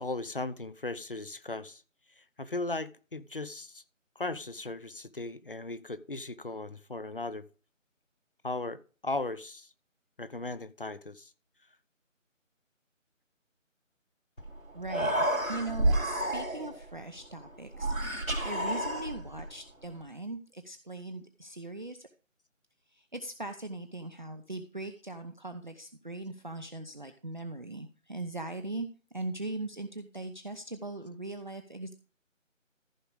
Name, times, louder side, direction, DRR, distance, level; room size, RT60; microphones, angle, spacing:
voice 1, 0.0-1.8 2.2-3.8 4.2-7.4 8.4-9.7 10.2-11.3, left 2 dB, 45° left, 0.7 m, -37 dB
Human voice, 14.4-14.5 14.8-16.8 17.7-19.4, right 1 dB, 85° right, 2.9 m, -30 dB
voice 2, 14.7-15.1 15.5-22.1 22.9-28.9 29.1-31.9, right 2 dB, 35° right, 0.7 m, -40 dB
14.0 x 4.9 x 4.9 m
figure-of-eight pair, 165°, 39 cm